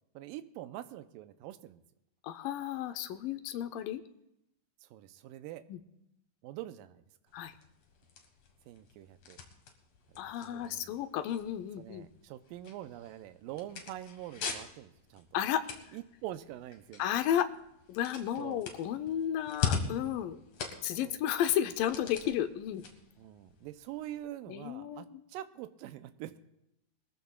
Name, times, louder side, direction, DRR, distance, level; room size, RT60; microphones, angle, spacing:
voice 1, 0.1-1.8 4.8-5.6 6.4-7.0 8.7-9.4 10.1-11.0 11.8-15.3 15.9-17.1 18.4-18.6 21.0-21.2 23.2-26.4, right 13 dB, 80° right, 10 dB, 2.2 m, -45 dB
voice 2, 2.2-4.0 5.7-5.8 7.3-7.5 10.2-12.1 15.3-15.6 17.0-17.5 17.9-20.4 20.8-22.8 24.5-25.1, left 10 dB, 75° left, 9 dB, 2.3 m, -33 dB
sound 1, 7.3-24.2, left 6 dB, 55° left, 2.4 m, -43 dB
22.0 x 14.5 x 2.4 m, 0.83 s
omnidirectional pair, 4.2 m